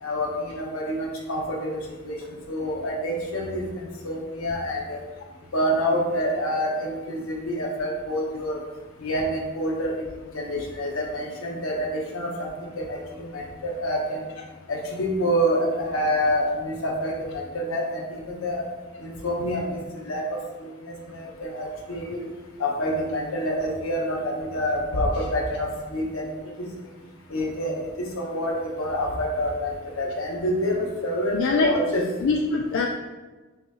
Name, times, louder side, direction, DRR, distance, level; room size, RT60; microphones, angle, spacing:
voice 1, 0.0-1.8 2.0-5.0 5.5-8.6 9.0-10.0 10.3-12.5 12.8-14.2 14.7-18.6 19.0-20.2 20.6-22.2 22.6-26.3 26.6-26.7 27.3-32.0, equal, 80° left, 0 dB, 0.8 m, -27 dB
voice 2, 31.3-31.7 32.2-32.9, left 4 dB, 60° left, 1 dB, 0.3 m, -23 dB
5.5 x 2.3 x 2.8 m, 1.2 s
head